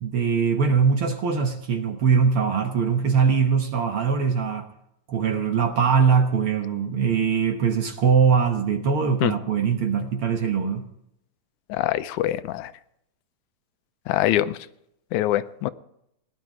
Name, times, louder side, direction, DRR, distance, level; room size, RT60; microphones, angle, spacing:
voice 1, 0.0-4.7 5.1-10.9, right 6 dB, 60° right, 5 dB, 1.7 m, -22 dB
voice 2, 11.7-12.7 14.1-14.6 15.1-15.7, left 14 dB, 85° left, 13 dB, 2.1 m, -24 dB
17.5 x 11.0 x 4.8 m, 0.78 s
omnidirectional pair, 3.4 m